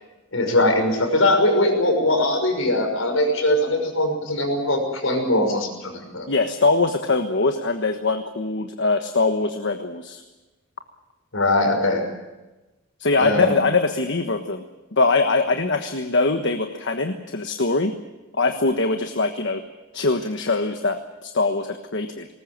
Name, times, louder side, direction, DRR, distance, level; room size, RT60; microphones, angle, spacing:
voice 1, 0.3-6.3 11.3-12.0 13.2-13.6, left 1 dB, 80° left, 5 dB, 5.9 m, -21 dB
voice 2, 6.3-10.2 13.0-14.6 15.0-17.9 18.3-19.6 19.9-22.3, left 3 dB, 60° left, 6 dB, 1.3 m, -22 dB
20.0 x 19.5 x 8.8 m, 1.1 s
head